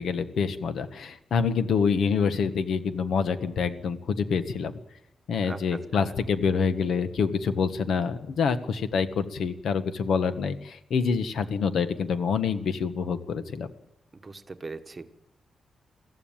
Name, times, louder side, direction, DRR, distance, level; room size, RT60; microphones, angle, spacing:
voice 1, 0.0-4.7 5.3-13.7, left 5 dB, 65° left, 10 dB, 1.4 m, -26 dB
voice 2, 14.2-15.1, right 3 dB, 20° right, 8 dB, 1.2 m, -39 dB
22.5 x 15.0 x 8.9 m, 0.85 s
wide cardioid pair, 170°, 0 cm